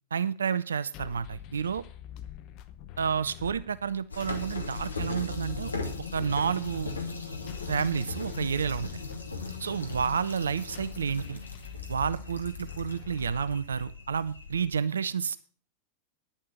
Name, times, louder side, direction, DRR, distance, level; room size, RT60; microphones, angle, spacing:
voice 1, 0.1-1.8 3.0-5.7 6.1-6.9 7.7-8.9 9.6-11.4 11.9-15.4, right 6 dB, 70° right, 17 dB, 0.4 m, -30 dB
sound 1, 0.9-14.0, left 11 dB, 40° left, 0.8 m, -45 dB
sound 2, 4.1-14.8, left 3 dB, 80° left, 1.5 m, -38 dB
10.5 x 7.3 x 6.0 m, 0.40 s
figure-of-eight pair, 90°, 0 cm